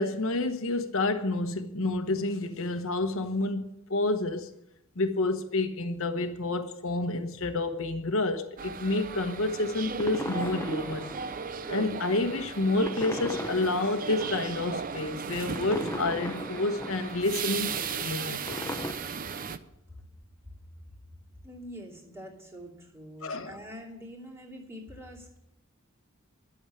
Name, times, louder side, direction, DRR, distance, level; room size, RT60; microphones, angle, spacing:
voice 1, 0.0-4.5 5.0-11.1 11.7-18.8 23.2-23.5, left 2 dB, 80° left, 1.1 m, -29 dB
sound 1, 8.6-19.6, right 6 dB, 40° right, 0.6 m, -36 dB
sound 2, 9.3-18.9, left 1 dB, 15° left, 0.7 m, -39 dB
voice 2, 21.4-25.4, equal, 15° right, 2.7 m, -45 dB
12.0 x 7.2 x 9.7 m
head